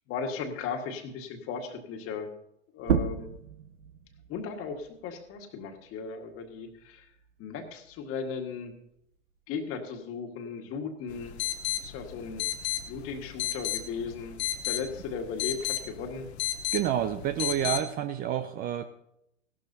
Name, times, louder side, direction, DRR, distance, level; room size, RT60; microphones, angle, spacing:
voice 1, 0.1-2.3 2.7-3.3 4.3-7.1 7.4-8.7 9.5-11.4 11.8-12.4 12.9-14.4 14.6-16.3 17.6-17.8, left 5 dB, 35° left, 4 dB, 1.7 m, -36 dB
sound 1, 2.8-8.0 8.4-10.2, right 7 dB, 80° right, 0.9 m, -35 dB
sound 2, 11.1-17.8, left 11 dB, 65° left, 1.0 m, -34 dB
voice 2, 16.7-18.8, right 10 dB, 25° right, 11 dB, 0.5 m, -29 dB
16.0 x 12.0 x 2.8 m, 0.77 s
hypercardioid pair, 105°, 36 cm